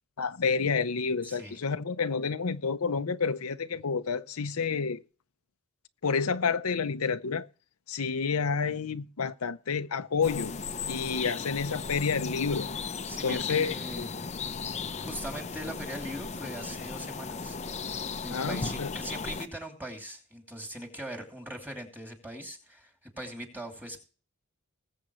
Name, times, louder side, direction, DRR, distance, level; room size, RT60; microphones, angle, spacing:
voice 1, 0.2-5.0 6.0-7.5 7.9-10.5 10.9-12.7 13.2-14.1 18.3-18.9, left 5 dB, 80° left, 0.7 m, -29 dB
voice 2, 1.2-1.6 13.1-14.3 14.9-17.6 18.2-24.0, equal, 10° right, 2.7 m, -40 dB
sound 1, 10.2-19.5, left 5 dB, 30° left, 0.7 m, -36 dB
20.5 x 7.7 x 3.1 m
head